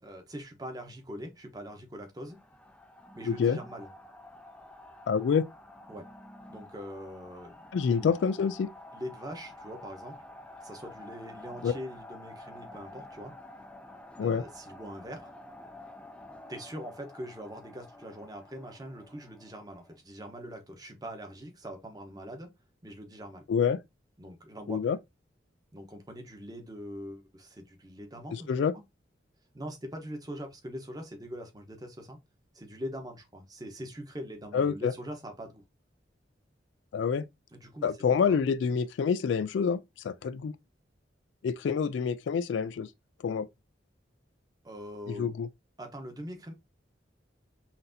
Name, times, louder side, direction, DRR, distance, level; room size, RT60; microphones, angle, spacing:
voice 1, 0.0-2.4 3.1-3.9 5.9-6.1 6.5-7.6 7.9-8.1 8.9-10.2 10.6-13.3 14.2-15.3 16.5-22.5 22.8-23.4 24.2-24.8 25.7-28.6 29.5-32.2 32.5-35.6 37.5-37.9 38.2-38.4 44.6-45.3 45.8-46.5, equal, 20° right, 1.0 m, -42 dB
sound 1, 2.3-20.0, left 1 dB, 5° left, 0.4 m, -49 dB
voice 2, 3.3-3.6 5.1-5.4 7.7-8.7 11.6-11.7 14.2-14.4 23.5-23.8 24.7-25.0 28.3-28.7 34.5-34.9 36.9-37.2 37.8-40.5 41.4-42.9 43.2-43.5 45.1-45.5, left 6 dB, 80° left, 0.3 m, -27 dB
5.8 x 2.7 x 2.6 m
head